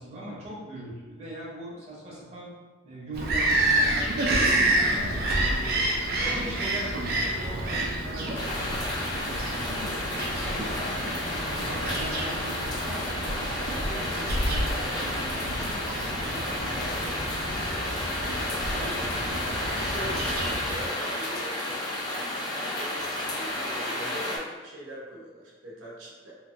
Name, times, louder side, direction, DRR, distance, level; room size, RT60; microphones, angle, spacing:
voice 1, 0.0-2.5 2.8-5.7 6.2-8.8 9.2-10.0 10.4-16.0, right 1 dB, 35° right, -7 dB, 0.8 m, -40 dB
Bird vocalization bird call bird song, 3.1-20.8, right 1 dB, 50° right, 0.4 m, -29 dB
voice 2, 5.5-5.9 6.4-6.6 10.4-10.8 14.8-15.0 16.9-19.1 19.6-21.8 22.7-26.3, equal, 90° right, -5 dB, 0.8 m, -43 dB
sound 1, 8.3-24.4, left 1 dB, 20° left, 0.4 m, -32 dB
2.9 x 2.5 x 2.5 m, 1.3 s
head